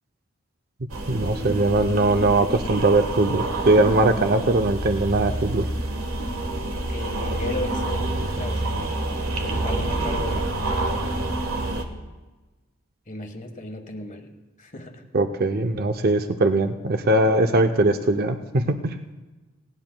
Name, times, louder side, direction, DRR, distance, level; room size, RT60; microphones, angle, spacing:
sound 1, 0.9-11.8, right 2 dB, 85° right, 1.3 m, -28 dB
voice 1, 1.1-5.7 15.1-19.0, right 2 dB, 50° right, 7 dB, 0.6 m, -20 dB
voice 2, 6.8-9.0 9.4-10.9 13.1-14.3 14.6-15.0, left 2 dB, 40° left, 6 dB, 1.3 m, -35 dB
18.0 x 17.5 x 2.2 m, 1.2 s
head